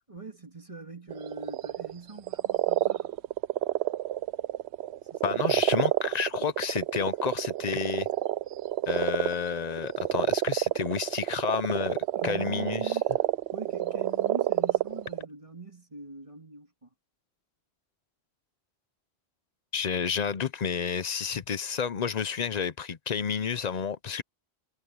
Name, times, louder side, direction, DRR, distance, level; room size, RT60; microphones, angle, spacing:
voice 1, 0.1-3.2 5.1-5.6 12.2-13.0 13.5-16.9, right 3 dB, 30° right, 2.0 m, -43 dB
sound 1, 1.1-1.9 2.2-15.3, right 13 dB, 85° right, 0.9 m, -28 dB
voice 2, 5.2-8.1 8.9-12.0 12.2-13.0 19.7-24.2, left 7 dB, 45° left, 0.7 m, -30 dB
omnidirectional pair, 1.1 m